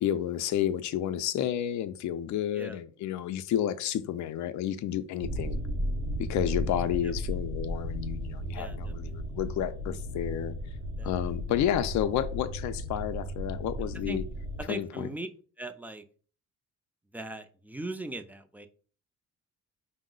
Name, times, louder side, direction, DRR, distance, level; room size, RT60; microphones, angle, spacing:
voice 1, 0.0-5.6 6.2-10.5 11.0-14.2 14.7-15.1, left 10 dB, 70° left, 0.4 m, -31 dB
sound 1, 5.2-14.6, equal, 60° right, 0.9 m, -35 dB
voice 2, 8.5-9.1 11.0-11.3 13.9-14.2 14.6-15.3 15.6-16.0 17.1-18.7, right 2 dB, 5° right, 0.4 m, -39 dB
5.3 x 2.0 x 3.7 m
cardioid pair, 90°, 30 cm